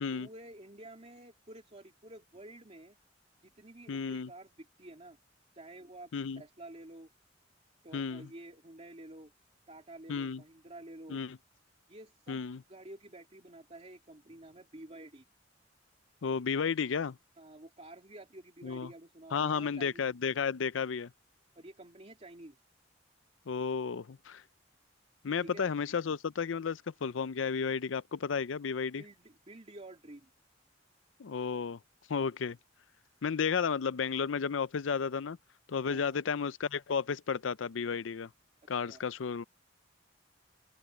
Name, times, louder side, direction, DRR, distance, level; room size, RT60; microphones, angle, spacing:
voice 1, 0.1-3.0 3.4-5.2 5.5-6.1 6.4-7.1 7.8-9.3 9.7-11.2 11.9-12.4 12.7-15.2 17.4-20.0 21.5-22.6 25.4-25.7 29.0-30.3 35.9-36.2 38.6-39.1, right 1 dB, 35° right, 2.8 m, -50 dB
voice 2, 3.9-4.3 6.1-6.4 7.9-8.3 10.1-10.4 11.1-11.4 12.3-12.6 16.2-17.2 18.6-18.9 19.3-21.1 23.5-24.4 25.2-29.0 31.2-31.8 32.1-32.6 33.2-35.4 35.7-38.3 38.7-39.4, left 6 dB, 85° left, 0.5 m, -33 dB
open air
head